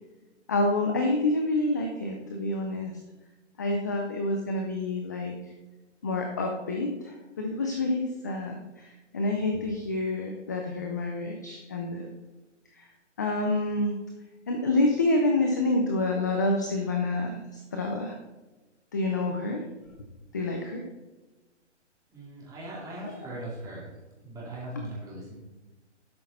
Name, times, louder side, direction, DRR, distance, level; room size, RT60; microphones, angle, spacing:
voice 1, 0.5-2.9 3.6-5.5 6.0-12.1 12.7-12.9 13.2-14.0 14.5-18.2 18.9-19.6 20.3-20.8 24.8-24.9, left 2 dB, 15° left, 2 dB, 0.4 m, -28 dB
voice 2, 22.1-25.4, right 1 dB, 10° right, -5 dB, 2.8 m, -39 dB
12.0 x 6.1 x 4.1 m, 1.1 s
hypercardioid pair, 155°, 36 cm